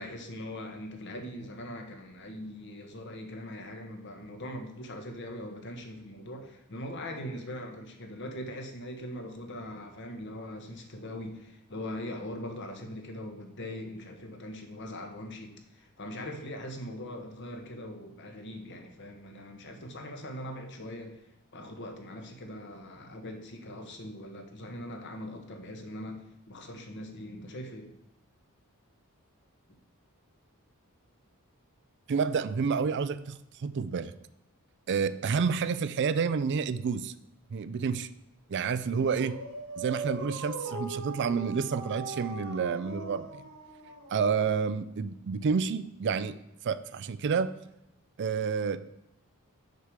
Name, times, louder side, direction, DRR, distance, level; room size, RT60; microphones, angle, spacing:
voice 1, 0.0-21.2 21.5-27.9 38.9-39.1, left 1 dB, 55° left, 4 dB, 1.2 m, -41 dB
voice 2, 32.1-34.1 34.9-37.1 37.5-38.1 38.5-39.4 39.8-43.4 44.1-46.4 46.6-47.6 48.2-48.8, right 5 dB, 55° right, 14 dB, 0.4 m, -29 dB
Dog, 38.8-44.5, right 3 dB, 70° right, 1.5 m, -40 dB
6.6 x 4.7 x 6.5 m, 0.84 s
head